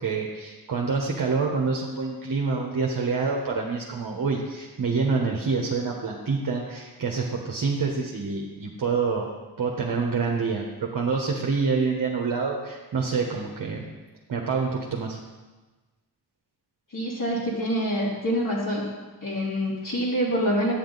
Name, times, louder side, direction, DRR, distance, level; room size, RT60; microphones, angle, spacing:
voice 1, 0.0-9.3 9.6-13.9 14.3-15.2, right 4 dB, 55° right, -1 dB, 1.0 m, -27 dB
voice 2, 16.9-18.8 19.2-20.7, equal, 50° left, -6 dB, 2.3 m, -26 dB
8.9 x 7.0 x 4.0 m, 1.2 s
cardioid pair, 65°, 40 cm